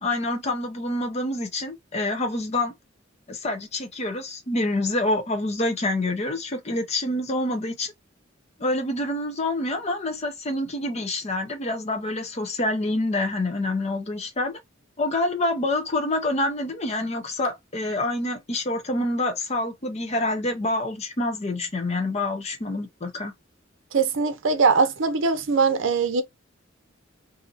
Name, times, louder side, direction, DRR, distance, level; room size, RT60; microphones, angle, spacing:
voice 1, 0.0-2.7 3.3-7.9 8.6-14.6 15.0-23.3, left 2 dB, 35° left, 0.7 m, -27 dB
voice 2, 23.9-26.2, right 4 dB, 75° right, 0.6 m, -21 dB
2.8 x 2.6 x 2.3 m
head